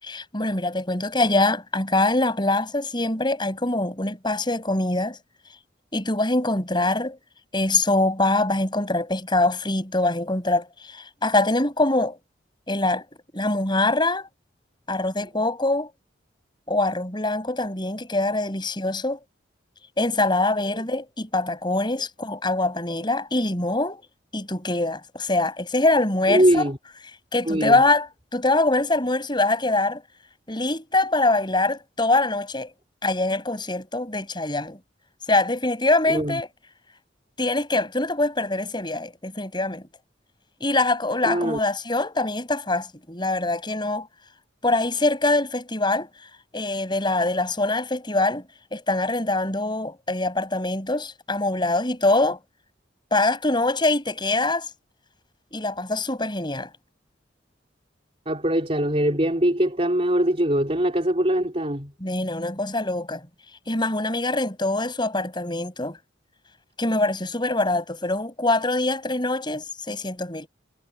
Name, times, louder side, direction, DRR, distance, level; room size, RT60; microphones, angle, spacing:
voice 1, 0.0-5.2 5.9-7.2 7.5-12.2 12.7-13.0 13.3-14.3 14.9-15.9 16.7-19.2 20.0-24.0 24.3-26.6 27.3-30.0 30.5-32.7 33.0-34.8 35.3-36.5 37.4-39.9 40.6-44.1 44.6-46.1 46.5-48.5 48.7-52.4 53.1-54.7 55.5-56.7 62.0-63.2 63.7-66.0 66.8-70.5, left 2 dB, 25° left, 7.2 m, -24 dB
voice 2, 26.3-26.8 27.5-27.8 36.1-36.4 41.2-41.6 58.3-61.9, right 1 dB, 35° right, 3.9 m, -22 dB
head